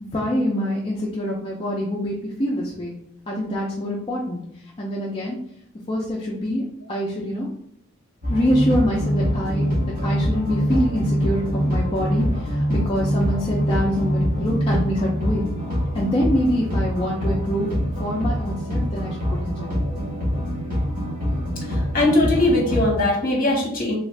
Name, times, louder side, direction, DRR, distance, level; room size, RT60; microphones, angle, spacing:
voice 1, 0.0-2.9 3.3-4.4 4.8-5.4 5.9-7.5 8.3-9.7 10.0-15.5 15.9-17.7 18.0-19.8, equal, 25° left, -4 dB, 0.4 m, -25 dB
sound 1, 8.2-22.9, equal, 40° right, 1.2 m, -24 dB
voice 2, 21.9-23.9, left 1 dB, 40° left, -2 dB, 1.0 m, -20 dB
3.4 x 2.4 x 3.2 m, 0.71 s
head